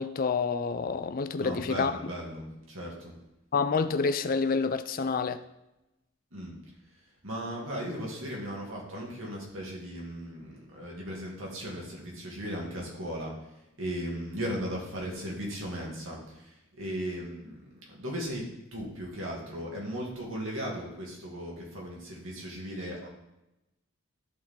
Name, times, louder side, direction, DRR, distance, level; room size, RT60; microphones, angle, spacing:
voice 1, 0.0-1.9 3.5-5.4, left 4 dB, 40° left, 0.4 m, -28 dB
voice 2, 1.4-3.1 6.3-6.5 7.2-13.3 13.8-17.6 17.9-18.4 18.7-23.1, equal, 65° right, 2.3 m, -37 dB
13.0 x 4.5 x 3.8 m
head